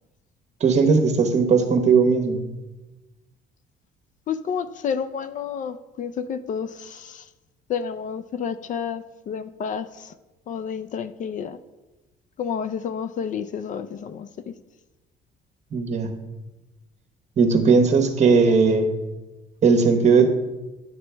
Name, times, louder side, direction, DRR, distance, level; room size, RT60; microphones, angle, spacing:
voice 1, 0.6-2.5 15.7-16.2 17.4-18.9 19.6-20.3, right 5 dB, 45° right, 6 dB, 1.2 m, -18 dB
voice 2, 4.3-7.3 7.7-10.1 10.5-11.6 12.4-14.5, left 7 dB, 50° left, 13 dB, 0.5 m, -30 dB
10.5 x 6.9 x 3.4 m, 1.1 s
cardioid pair, 110°, 17 cm